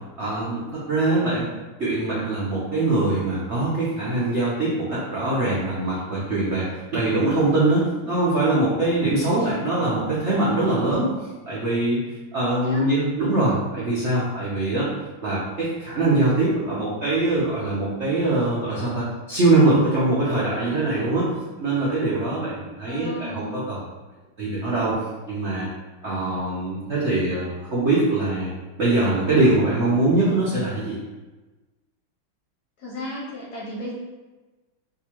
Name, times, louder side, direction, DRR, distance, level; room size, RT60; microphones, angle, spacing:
voice 1, 0.2-1.5 1.8-12.0 12.3-14.9 15.2-21.3 21.6-23.8 24.4-25.0 25.3-25.7 26.0-28.5 28.8-31.0, right 2 dB, 75° right, -9 dB, 0.6 m, -22 dB
voice 2, 9.3-9.7 12.6-12.9 22.8-23.6 32.8-33.9, left 1 dB, 60° left, -6 dB, 1.1 m, -34 dB
3.6 x 2.6 x 2.9 m, 1.2 s
omnidirectional pair, 2.3 m